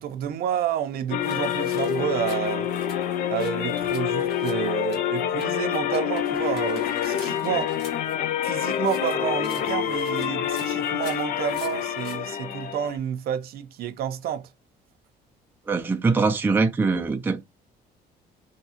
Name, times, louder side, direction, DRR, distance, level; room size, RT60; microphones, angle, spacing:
voice 1, 0.0-2.7 3.3-7.8 8.4-14.5, right 9 dB, 65° right, 0.5 m, -30 dB
sound 1, 1.1-13.0, left 10 dB, 60° left, 0.4 m, -27 dB
sound 2, 1.2-5.5 5.7-8.1 8.8-12.2, left 3 dB, 85° left, 1.6 m, -47 dB
voice 2, 15.7-17.4, right 4 dB, 10° right, 0.4 m, -22 dB
2.7 x 2.3 x 2.8 m
cardioid pair, 110°, 17 cm